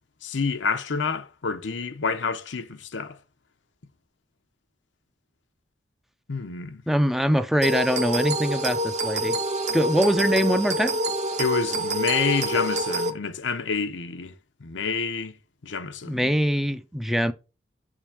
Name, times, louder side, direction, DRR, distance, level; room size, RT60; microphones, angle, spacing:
voice 1, 0.2-3.2 6.3-6.8 11.4-14.3 14.6-15.3 15.6-16.3, left 5 dB, 80° left, 0.7 m, -28 dB
voice 2, 6.9-9.4 9.7-11.0 16.0-17.3, equal, ahead, 0.4 m, -23 dB
sound 1, 7.6-13.1, right 1 dB, 40° right, 0.7 m, -26 dB
7.3 x 3.8 x 4.4 m
head